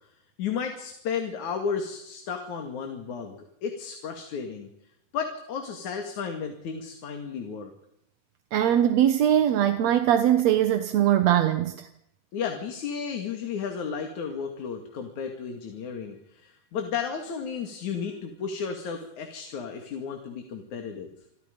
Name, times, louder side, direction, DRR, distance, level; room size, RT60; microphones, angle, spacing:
voice 1, 0.4-4.7 5.1-7.7 12.3-21.1, left 6 dB, 60° left, 4 dB, 3.6 m, -33 dB
voice 2, 8.5-11.9, right 11 dB, 60° right, 8 dB, 2.1 m, -21 dB
28.0 x 23.5 x 5.4 m, 0.78 s
omnidirectional pair, 4.0 m